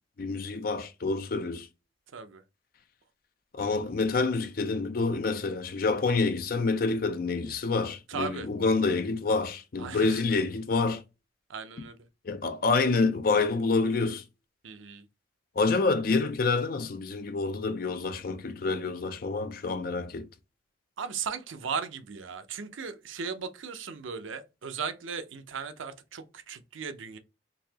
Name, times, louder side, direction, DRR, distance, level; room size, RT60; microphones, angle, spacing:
voice 1, 0.2-1.7 3.5-11.0 12.2-14.2 15.6-20.3, left 3 dB, 50° left, 0.4 m, -27 dB
voice 2, 8.1-8.5 9.8-10.2 11.5-12.0 14.6-15.0 21.0-27.2, right 6 dB, 85° right, 0.6 m, -37 dB
4.0 x 2.8 x 2.8 m
head